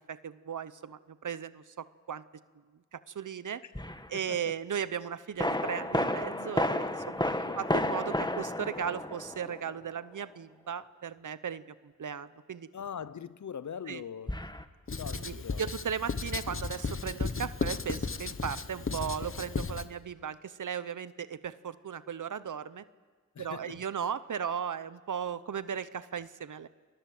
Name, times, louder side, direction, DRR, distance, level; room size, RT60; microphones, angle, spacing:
voice 1, 0.1-2.2 2.9-3.6 4.1-7.2 7.6-12.7 13.9-14.0 15.1-22.8 23.4-26.7, right 7 dB, 75° right, 15 dB, 0.8 m, -36 dB
sound 1, 3.8-4.1 5.4-9.8 14.3-14.6, left 1 dB, 15° left, 1.5 m, -32 dB
voice 2, 7.3-7.6 12.7-14.3 15.0-15.6 23.4-23.6, left 7 dB, 65° left, 17 dB, 0.7 m, -41 dB
Writing, 14.9-19.9, left 4 dB, 40° left, 1.1 m, -35 dB
29.5 x 21.0 x 7.6 m, 1.4 s
cardioid pair, 45°, 31 cm